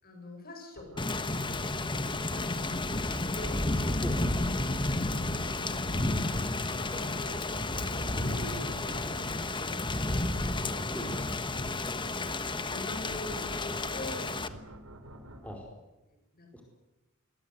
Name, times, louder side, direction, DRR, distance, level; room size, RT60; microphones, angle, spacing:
voice 1, 0.0-3.7 6.7-9.9 12.0-14.4 16.3-16.5, left 1 dB, 45° left, 4 dB, 7.9 m, -45 dB
Waves of suspense, 0.7-15.6, right 1 dB, 90° right, 3.7 m, -49 dB
Thunder / Rain, 1.0-14.5, left 2 dB, 25° left, 1.3 m, -32 dB
voice 2, 10.7-11.4 15.1-15.7 16.5-16.6, equal, 5° left, 0 dB, 4.6 m, -41 dB
27.0 x 22.5 x 8.3 m, 1.0 s
head